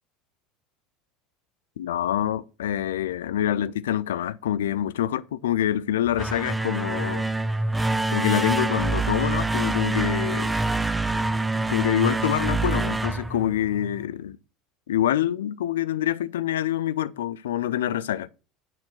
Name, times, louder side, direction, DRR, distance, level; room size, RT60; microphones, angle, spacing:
voice 1, 1.8-7.3 8.1-10.6 11.7-14.4 14.9-18.3, left 11 dB, 70° left, 0.5 m, -26 dB
sound 1, 6.1-14.0, right 2 dB, 10° right, 0.7 m, -26 dB
9.0 x 4.4 x 7.3 m
figure-of-eight pair, 70°, 0 cm